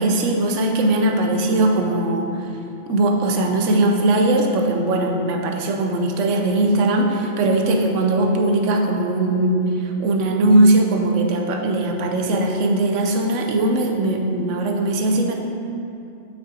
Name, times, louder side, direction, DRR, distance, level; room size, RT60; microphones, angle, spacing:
voice 1, 0.0-2.3 2.9-15.3, right 2 dB, 80° right, 3 dB, 1.0 m, -19 dB
8.1 x 5.8 x 2.7 m, 2.7 s
omnidirectional pair, 1.3 m